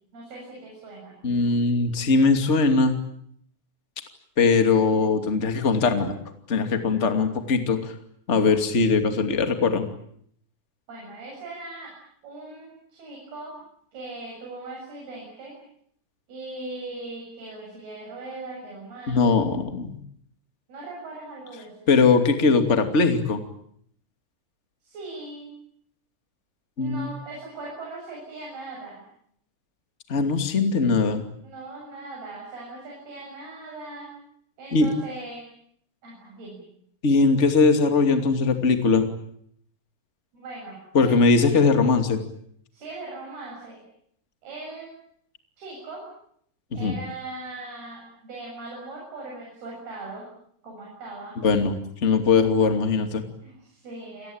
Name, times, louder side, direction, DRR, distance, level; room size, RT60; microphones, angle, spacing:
voice 1, 0.1-1.2 10.9-11.9 12.2-13.6 13.9-15.5 16.3-19.3 20.7-21.9 24.8-25.5 26.8-29.0 31.4-34.1 34.6-35.5 36.0-36.6 40.3-41.6 42.7-43.8 44.4-44.9 45.6-46.0 46.7-50.3 50.6-51.4 53.4-54.3, right 2 dB, 65° right, -2 dB, 9.2 m, -39 dB
voice 2, 1.2-3.0 4.4-6.2 6.5-7.9 8.3-9.9 19.1-20.0 21.9-23.4 26.8-27.1 30.1-31.2 34.7-34.9 37.0-39.1 40.9-42.2 46.7-46.9 51.4-53.2, left 4 dB, 20° left, 6 dB, 2.0 m, -20 dB
28.5 x 20.0 x 8.8 m, 0.69 s
omnidirectional pair, 4.9 m